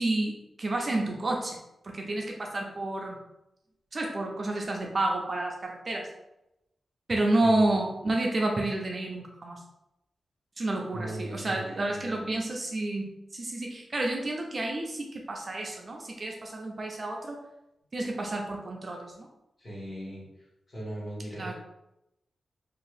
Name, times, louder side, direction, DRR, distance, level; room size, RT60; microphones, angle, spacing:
voice 1, 0.0-1.6 1.8-3.2 3.9-6.1 7.1-9.6 10.6-17.4 17.9-19.3 21.4-21.5, right 2 dB, 35° right, 1 dB, 0.4 m, -30 dB
voice 2, 10.9-12.4 19.6-21.5, right 1 dB, 35° left, -7 dB, 1.3 m, -39 dB
2.6 x 2.4 x 3.2 m, 0.87 s
wide cardioid pair, 145°, 0 cm